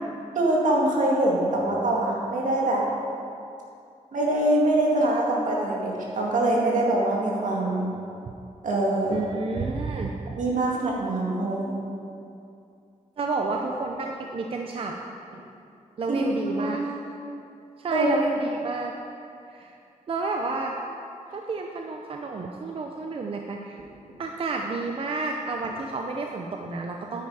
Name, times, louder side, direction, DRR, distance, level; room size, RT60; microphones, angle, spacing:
voice 1, 0.3-2.9 4.1-7.9 8.6-9.2 10.4-11.8 16.1-16.2 16.6-16.8 17.9-18.1, right 1 dB, 75° right, -3 dB, 2.0 m, -24 dB
voice 2, 9.1-10.4 13.2-15.0 16.0-16.8 17.8-18.9 19.5-19.8 20.1-20.8 21.3-23.8 24.2-27.3, right 3 dB, 45° right, 2 dB, 0.6 m, -30 dB
9.6 x 8.7 x 4.9 m, 2.6 s
wide cardioid pair, 160°, 13 cm